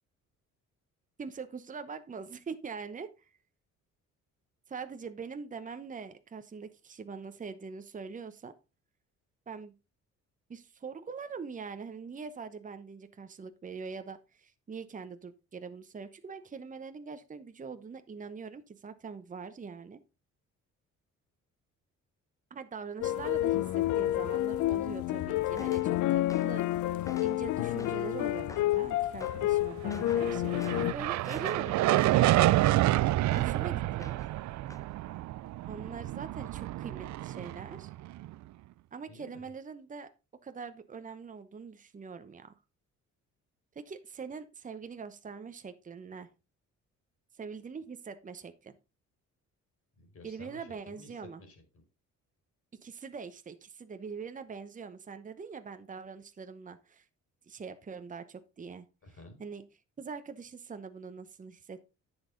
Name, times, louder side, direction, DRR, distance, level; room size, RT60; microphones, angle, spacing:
voice 1, 1.2-3.1 4.7-8.5 9.5-9.7 10.5-20.0 22.5-26.7 27.2-32.4 33.3-34.2 35.7-37.9 38.9-40.1 40.4-42.5 43.7-46.3 47.4-48.7 50.2-51.4 52.8-57.0 57.5-58.9 59.4-59.6 60.0-61.8, right 5 dB, 25° right, 10 dB, 0.9 m, -43 dB
sound 1, 23.0-30.9, left 14 dB, 75° left, 0.6 m, -29 dB
sound 2, 25.6-25.9 26.3-26.6 27.0-27.4 27.8-28.1 28.5-28.8 29.2-29.4 29.9-30.3 30.6-30.9 31.2-32.9 33.3-33.6 34.0-34.4 34.7-34.9, left 2 dB, 10° left, 0.8 m, -49 dB
sound 3, 29.9-38.3, right 16 dB, 70° right, 0.4 m, -28 dB
voice 2, 39.1-39.5 49.9-51.8 59.0-59.4, left 2 dB, 50° left, 3 dB, 4.7 m, -53 dB
10.5 x 7.2 x 3.9 m, 0.29 s
cardioid pair, 90°, 30 cm